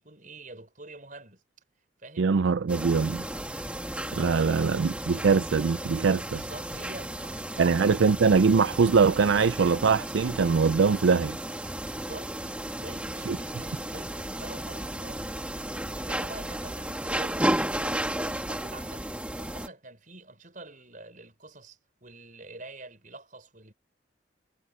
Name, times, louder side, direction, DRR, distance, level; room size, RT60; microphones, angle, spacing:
voice 1, 0.0-1.4 2.0-2.3 4.3-4.7 6.2-8.0 11.8-12.3 12.6-15.3 15.9-19.1 19.4-23.7, right 2 dB, 45° right, 6.3 m, -46 dB
voice 2, 2.2-3.2 4.1-6.4 7.6-11.4 13.3-13.4, right 5 dB, 70° right, 0.4 m, -22 dB
sound 1, 2.7-19.7, right 1 dB, 5° right, 1.5 m, -34 dB
head